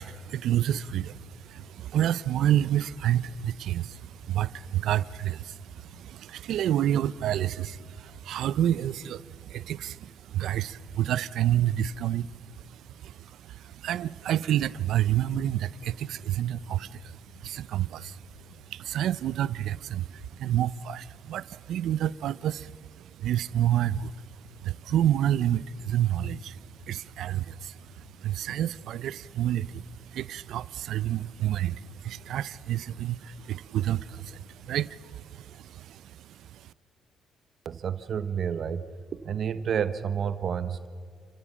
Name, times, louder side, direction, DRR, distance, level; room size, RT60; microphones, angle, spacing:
voice 1, 0.0-36.7, right 11 dB, 80° right, 0.5 m, -29 dB
voice 2, 37.6-38.9 39.2-40.9, right 7 dB, 55° right, 0.9 m, -30 dB
30.0 x 15.5 x 7.4 m
cardioid pair, 90°, 0 cm